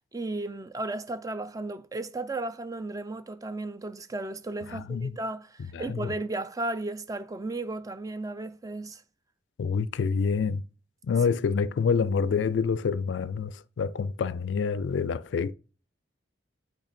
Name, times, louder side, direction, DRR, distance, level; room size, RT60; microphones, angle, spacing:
voice 1, 0.1-9.0, right 2 dB, 20° right, 0.4 m, -34 dB
voice 2, 4.7-5.2 5.7-6.1 9.6-10.6 11.0-15.5, left 5 dB, 80° left, 0.3 m, -27 dB
8.8 x 3.1 x 4.2 m
head